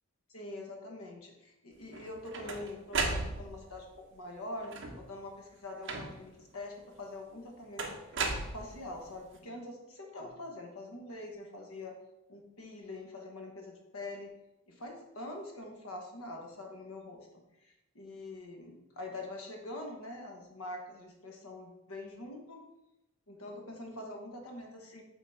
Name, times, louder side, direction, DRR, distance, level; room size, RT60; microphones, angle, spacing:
voice 1, 0.3-11.9 12.3-14.3 14.7-22.6 23.3-25.0, left 2 dB, 85° left, 2 dB, 1.3 m, -44 dB
sound 1, 1.9-3.8 4.6-5.2 5.9-6.4 7.8-9.1, right 3 dB, 55° right, 0.8 m, -35 dB
5.9 x 3.8 x 4.9 m, 0.93 s
head